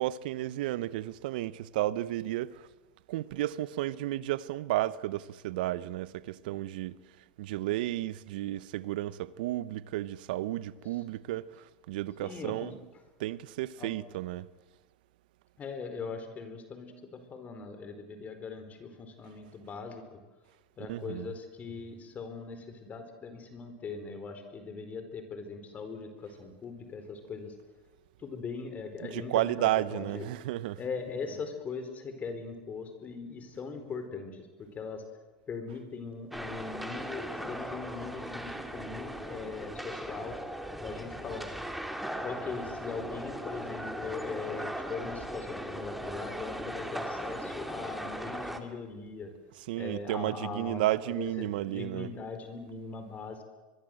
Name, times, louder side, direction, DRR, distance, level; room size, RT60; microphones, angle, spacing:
voice 1, 0.0-2.7 3.1-7.0 7.4-12.8 13.2-14.5 20.9-21.3 29.0-30.8 49.7-52.1, right 15 dB, 70° right, 1.0 m, -32 dB
voice 2, 12.2-12.7 13.8-13.9 15.6-20.2 20.8-27.6 28.2-30.4 30.8-35.0 35.5-40.4 40.8-41.5 42.2-49.3 49.8-53.4, left 5 dB, 30° left, 4.3 m, -40 dB
sound 1, 36.3-48.6, equal, ahead, 2.8 m, -38 dB
24.0 x 23.0 x 7.8 m
hypercardioid pair, 100°, 5 cm